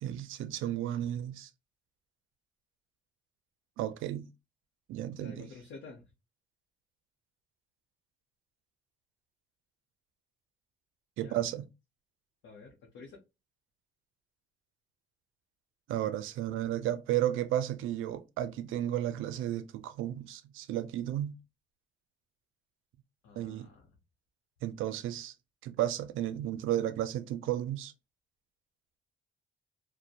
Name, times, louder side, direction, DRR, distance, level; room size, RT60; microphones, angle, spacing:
voice 1, 0.0-1.5 3.8-4.3 4.9-5.5 11.2-11.6 15.9-21.4 23.4-23.7 24.6-25.3 25.6-27.9, right 12 dB, 85° right, 0.4 m, -33 dB
voice 2, 5.1-6.1 11.2-11.4 12.4-13.2 23.2-24.0, left 4 dB, 80° left, 0.7 m, -50 dB
2.4 x 2.1 x 2.7 m
cardioid pair, 90°, 20 cm